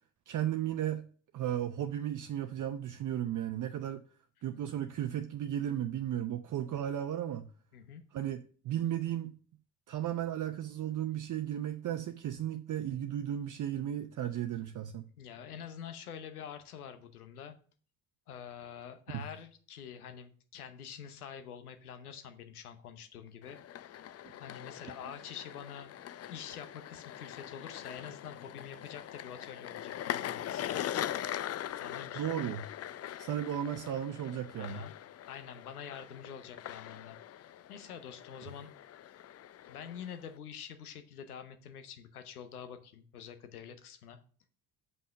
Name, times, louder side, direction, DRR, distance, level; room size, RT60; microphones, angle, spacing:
voice 1, 0.3-1.0 1.3-4.0 4.4-7.5 8.1-9.4 9.9-15.0 19.1-19.3 32.1-32.7 33.2-34.9, right 11 dB, 45° right, 0.7 m, -35 dB
voice 2, 15.2-17.5 18.3-23.6 23.9-24.0 24.4-25.9 26.3-30.9 31.8-32.2 34.6-34.9 35.2-37.2 37.7-38.7 39.7-44.2, left 8 dB, 90° left, 0.9 m, -46 dB
sound 1, 23.4-40.4, left 11 dB, 35° left, 0.5 m, -42 dB
5.6 x 5.4 x 6.2 m
hypercardioid pair, 50°, 43 cm